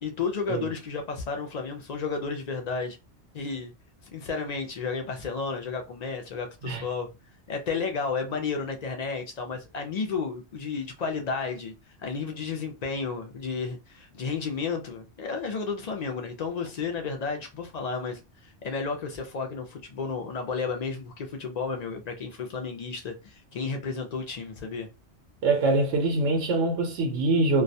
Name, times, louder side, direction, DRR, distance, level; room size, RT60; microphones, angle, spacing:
voice 1, 0.0-3.0 3.3-3.7 4.1-7.1 7.5-11.7 12.0-24.9, left 5 dB, 60° left, 0.4 m, -32 dB
voice 2, 25.4-27.6, right 2 dB, 85° right, 0.9 m, -24 dB
2.2 x 2.1 x 2.6 m
omnidirectional pair, 1.2 m